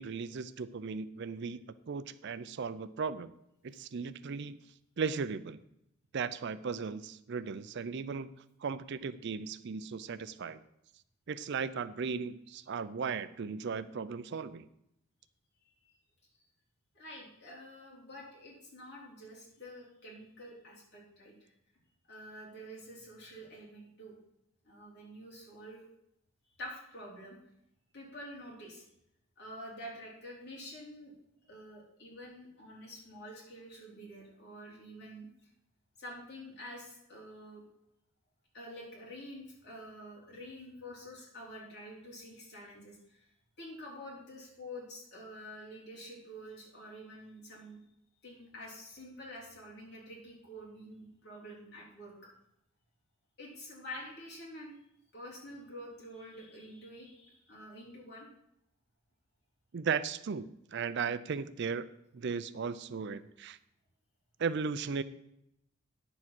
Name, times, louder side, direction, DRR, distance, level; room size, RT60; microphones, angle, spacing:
voice 1, 0.0-1.6 1.9-3.3 3.6-4.6 5.0-5.6 6.1-8.3 8.6-10.6 11.3-14.7 59.7-61.9 62.1-63.6 64.4-65.0, right 5 dB, 55° right, 15 dB, 0.4 m, -36 dB
voice 2, 16.9-21.5 22.1-24.1 24.6-25.9 26.6-27.4 27.9-28.8 29.4-31.1 31.4-35.3 36.0-37.6 38.5-43.3 43.6-47.8 48.2-52.3 53.4-54.8 55.1-58.3, equal, 50° left, -4 dB, 4.1 m, -48 dB
9.7 x 7.2 x 6.0 m, 0.78 s
head